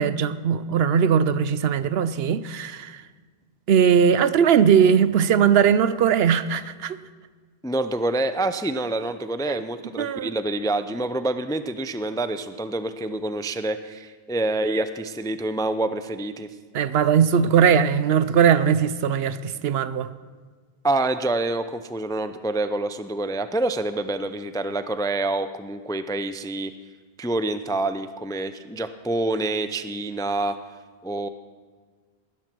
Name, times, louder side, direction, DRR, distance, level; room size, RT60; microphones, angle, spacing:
voice 1, 0.0-3.0 3.7-7.0 9.5-9.6 10.0-10.3 16.7-20.1, right 7 dB, 70° right, 0.8 m, -19 dB
voice 2, 7.6-16.5 20.8-26.7 27.2-30.6 31.0-31.3, right 2 dB, 5° left, 0.3 m, -27 dB
19.5 x 11.0 x 6.1 m
omnidirectional pair, 1.1 m